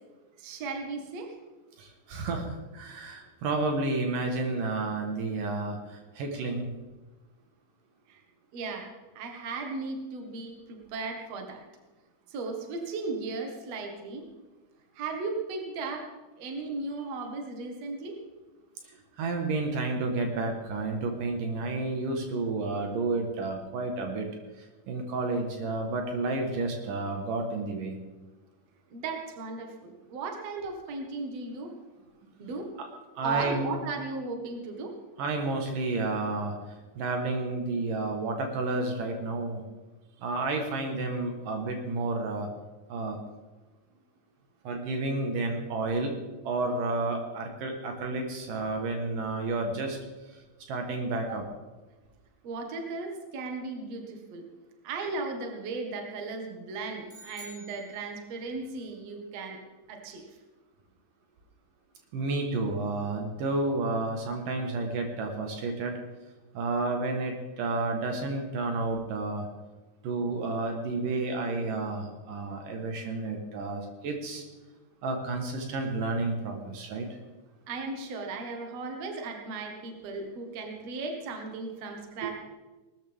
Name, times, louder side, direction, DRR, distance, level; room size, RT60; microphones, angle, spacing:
voice 1, 0.4-1.3 8.1-8.2 8.5-11.7 12.3-14.2 14.9-16.1 16.4-18.2 28.9-31.7 32.4-32.7 33.2-35.0 51.3-51.4 52.4-54.4 54.8-59.6 59.9-60.2 77.7-82.3, right 3 dB, 55° right, 2 dB, 2.6 m, -36 dB
voice 2, 1.8-6.7 18.9-24.3 24.9-27.9 32.8-32.9 33.2-33.7 35.2-36.6 37.0-39.6 40.2-42.5 42.9-43.2 44.6-46.2 46.4-50.0 50.7-51.4 62.1-66.0 66.5-69.5 70.0-74.4 75.0-77.1 82.2-82.3, right 3 dB, 75° right, 3 dB, 3.0 m, -31 dB
sound 1, 57.1-58.5, equal, ahead, 3.2 m, -49 dB
20.0 x 13.0 x 3.6 m, 1.2 s
omnidirectional pair, 4.0 m